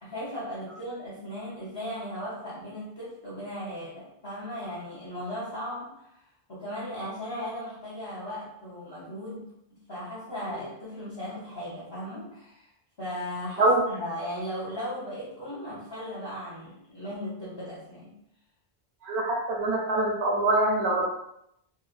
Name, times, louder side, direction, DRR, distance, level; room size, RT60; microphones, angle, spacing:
voice 1, 0.0-12.7 13.0-18.2, equal, 30° left, -10 dB, 0.6 m, -37 dB
voice 2, 19.0-21.0, right 2 dB, 80° right, 0 dB, 0.9 m, -24 dB
2.7 x 2.1 x 2.4 m, 0.79 s
omnidirectional pair, 1.0 m